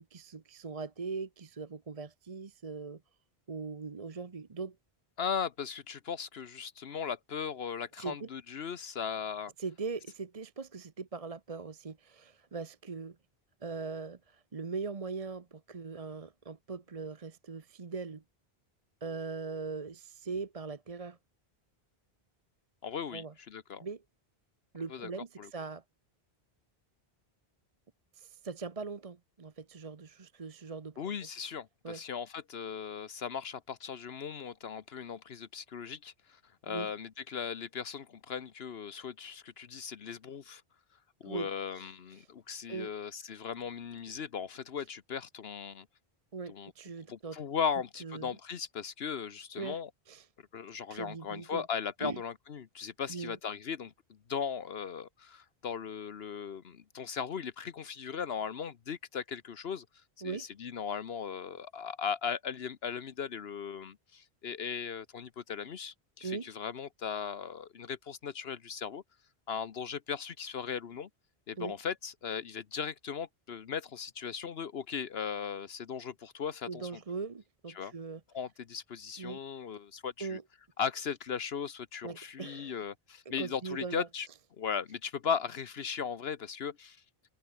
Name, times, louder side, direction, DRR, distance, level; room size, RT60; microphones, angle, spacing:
voice 1, 0.0-3.0 3.5-4.8 8.0-8.3 9.6-13.2 13.6-18.2 19.0-21.2 23.1-23.3 23.8-24.0 24.7-25.8 28.1-31.0 31.8-32.0 36.7-36.9 41.2-41.5 41.7-42.3 42.7-42.9 46.3-47.4 48.0-48.4 49.5-49.8 50.1-50.3 50.7-51.6 52.0-52.2 53.1-53.4 60.2-60.5 66.2-66.5 71.6-71.7 76.7-78.2 79.2-79.4 80.2-80.4 82.0-82.8 83.3-84.1, right 4 dB, 35° right, 1.0 m, -40 dB
voice 2, 5.2-9.5 22.8-23.8 24.9-25.1 25.4-25.5 31.0-40.6 41.2-45.9 46.5-46.7 47.1-49.9 50.5-53.9 54.3-59.9 60.2-69.0 69.5-71.1 71.5-76.9 77.7-77.9 78.3-80.4 80.8-84.3 84.6-87.0, left 7 dB, 75° left, 1.2 m, -38 dB
omnidirectional pair, 1.1 m